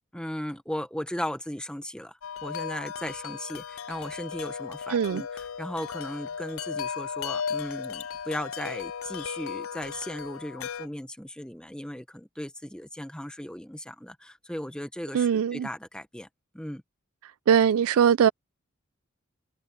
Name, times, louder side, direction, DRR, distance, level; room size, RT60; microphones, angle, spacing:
voice 1, 0.1-16.3 16.5-16.8, equal, 5° left, 1.1 m, -37 dB
Wind chime, 2.2-10.9, left 7 dB, 75° left, 0.4 m, -36 dB
voice 2, 4.9-5.2 15.1-15.7 17.2-18.3, right 8 dB, 85° right, 0.3 m, -22 dB
head